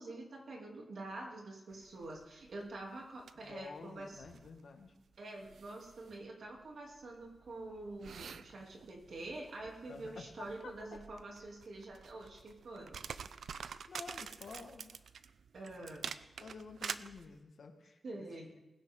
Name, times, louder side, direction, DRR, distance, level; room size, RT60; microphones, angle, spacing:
voice 1, 0.0-4.2 5.2-13.0 15.5-16.0 18.0-18.5, right 2 dB, 65° right, -1 dB, 2.7 m, -46 dB
sound 1, 1.7-17.4, right 6 dB, 80° right, 0.5 m, -48 dB
voice 2, 3.4-4.9 8.5-8.6 9.9-11.0 13.6-15.0 16.0-18.3, left 4 dB, 65° left, 4 dB, 1.5 m, -51 dB
20.0 x 10.5 x 3.7 m, 1.0 s
wide cardioid pair, 140°, 0 cm